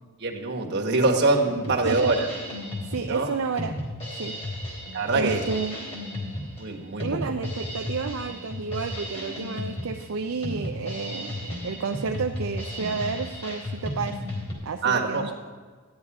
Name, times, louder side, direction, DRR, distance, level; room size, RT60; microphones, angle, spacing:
voice 1, 0.2-2.3 3.1-3.3 4.9-5.4 6.6-7.2 14.8-15.3, right 3 dB, 50° right, 0 dB, 1.4 m, -24 dB
Drum kit, 1.2-14.5, left 1 dB, 25° left, 3.2 m, -34 dB
voice 2, 2.8-3.7 4.2-4.3 5.1-5.8 7.0-14.2 14.6-15.3, right 5 dB, 65° right, 5 dB, 0.5 m, -31 dB
13.0 x 9.6 x 4.8 m, 1.5 s
head